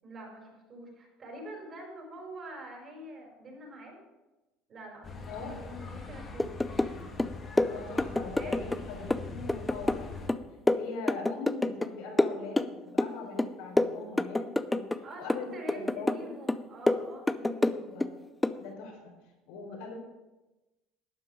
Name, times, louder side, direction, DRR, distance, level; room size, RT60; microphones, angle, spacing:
voice 1, 0.0-4.0 4.7-6.7 8.4-8.7 15.0-17.7, right 1 dB, 35° right, -1 dB, 4.6 m, -45 dB
sound 1, 5.0-10.3, left 3 dB, 25° left, 1.8 m, -43 dB
voice 2, 5.3-5.9 7.6-10.3 10.8-14.8 15.2-16.3 17.6-18.1 18.6-19.1 19.5-19.9, left 4 dB, 85° left, 0 dB, 4.5 m, -41 dB
sound 2, 6.4-6.9 7.2-8.8 9.1-11.9 12.2-13.1 13.4-15.0 15.3-16.2 16.5-18.1 18.4-18.6, left 2 dB, 10° left, 0.4 m, -28 dB
12.0 x 9.4 x 4.9 m, 1.1 s
cardioid pair, 140°, 0 cm